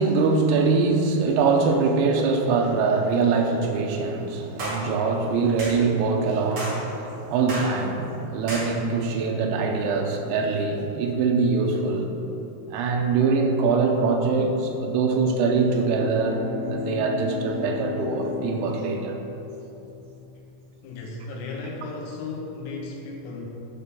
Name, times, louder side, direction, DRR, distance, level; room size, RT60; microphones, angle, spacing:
voice 1, 0.0-12.1 12.7-19.2, right 4 dB, 90° right, 2 dB, 3.5 m, -23 dB
sound 1, 4.6-4.8 5.6-5.8 6.6-6.8 7.5-7.7 8.5-8.7, right 1 dB, 50° right, 2.0 m, -31 dB
Bowed string instrument, 15.5-20.1, left 4 dB, 65° left, 3.2 m, -35 dB
voice 2, 20.8-23.5, left 3 dB, 80° left, -1 dB, 2.9 m, -35 dB
9.8 x 3.6 x 6.8 m, 2.9 s
omnidirectional pair, 5.8 m